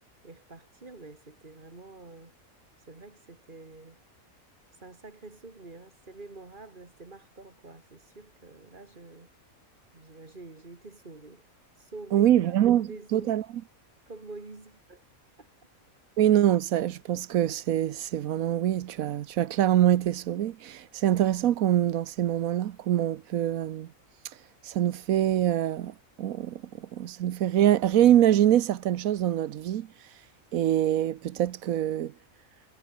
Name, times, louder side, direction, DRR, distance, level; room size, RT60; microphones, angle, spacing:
voice 1, 0.2-2.3 2.8-4.0 4.7-9.3 9.9-11.5 11.7-13.4 14.1-15.0 15.4-15.5, right 3 dB, 35° right, 2.8 m, -47 dB
voice 2, 12.1-13.4 16.2-23.9 24.6-26.6 26.9-29.9 30.5-32.1, right 11 dB, 80° right, 1.2 m, -24 dB
omnidirectional pair, 1.4 m